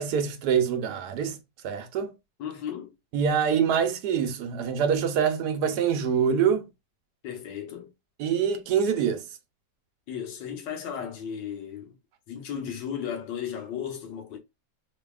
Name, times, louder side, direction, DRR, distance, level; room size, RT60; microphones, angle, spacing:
voice 1, 0.0-1.4 1.6-2.1 3.1-6.6 8.2-9.2, right 7 dB, 70° right, 1.2 m, -25 dB
voice 2, 2.4-2.9 7.2-7.9 10.1-11.9 12.3-14.4, left 8 dB, 85° left, 1.6 m, -35 dB
4.7 x 2.8 x 2.3 m
omnidirectional pair, 1.9 m